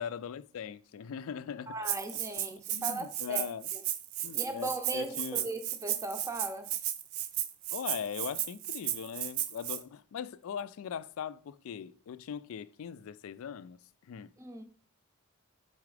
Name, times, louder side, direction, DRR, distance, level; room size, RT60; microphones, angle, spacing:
voice 1, 0.0-1.9 2.7-3.7 4.2-5.5 7.7-14.3, left 7 dB, 65° left, 0.3 m, -40 dB
voice 2, 1.7-3.5 3.7-3.8 4.3-6.7 14.4-14.6, right 2 dB, 15° right, 0.6 m, -38 dB
Rattle (instrument), 1.8-9.8, right 12 dB, 70° right, 0.5 m, -34 dB
4.8 x 4.2 x 4.8 m
head